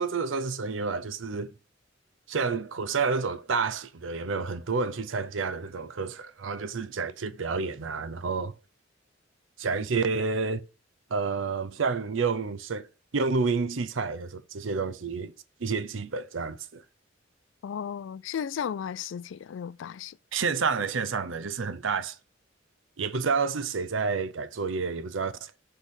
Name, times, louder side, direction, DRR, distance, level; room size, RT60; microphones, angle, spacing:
voice 1, 0.0-1.5 2.3-8.5 9.6-10.6 11.1-12.9 13.1-15.3 15.6-16.8 20.3-22.2 23.0-25.5, right 4 dB, 80° right, 0.6 m, -29 dB
voice 2, 17.6-20.2, left 8 dB, 75° left, 0.3 m, -34 dB
6.2 x 3.4 x 5.5 m
head